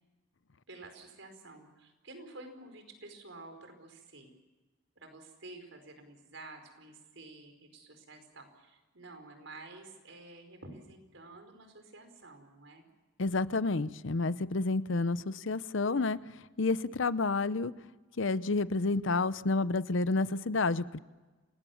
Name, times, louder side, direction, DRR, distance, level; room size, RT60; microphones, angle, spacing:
voice 1, 0.7-4.3 5.0-12.8, right 2 dB, 70° right, 6 dB, 4.9 m, -50 dB
voice 2, 13.2-16.2 16.6-17.7 18.2-21.0, left 3 dB, 70° left, 16 dB, 0.7 m, -30 dB
28.0 x 19.5 x 7.2 m, 1.2 s
head